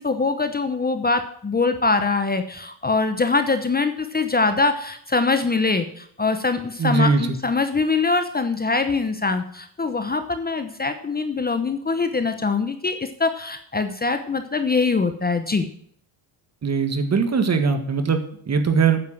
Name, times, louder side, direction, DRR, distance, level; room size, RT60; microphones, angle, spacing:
voice 1, 0.0-15.7, left 4 dB, 20° left, 8 dB, 0.9 m, -23 dB
voice 2, 6.8-7.2 16.6-19.0, right 5 dB, 35° right, 7 dB, 1.7 m, -20 dB
9.5 x 7.4 x 7.4 m, 0.64 s
cardioid pair, 105°, 47 cm